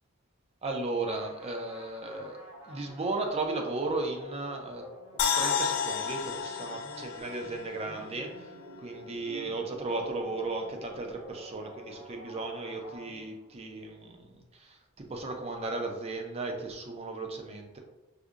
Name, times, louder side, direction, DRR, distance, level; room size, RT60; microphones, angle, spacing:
voice 1, 0.6-2.4 2.7-4.8 5.3-8.5 8.8-14.8 15.1-17.8, right 2 dB, 30° right, 2 dB, 0.5 m, -35 dB
sound 1, 1.1-13.6, equal, 50° right, 0.9 m, -49 dB
sound 2, 5.2-8.4 8.7-8.8, left 7 dB, 60° left, 0.3 m, -31 dB
4.9 x 2.7 x 2.4 m, 1.0 s
head